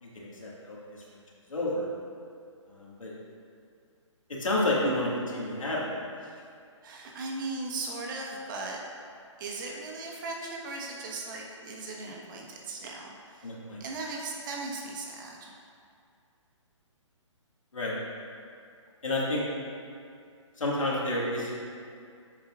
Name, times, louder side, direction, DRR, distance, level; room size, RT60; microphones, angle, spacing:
voice 1, 0.0-1.2 1.5-1.9 2.7-3.1 4.3-6.0 13.4-13.8 17.7-18.0 19.0-19.4 20.6-21.5, left 1 dB, 90° left, -5 dB, 1.9 m, -30 dB
voice 2, 6.8-8.8 9.4-13.5 13.8-15.6, right 3 dB, 40° right, -1 dB, 1.2 m, -38 dB
9.3 x 7.1 x 2.4 m, 2.3 s
hypercardioid pair, 150°, 16 cm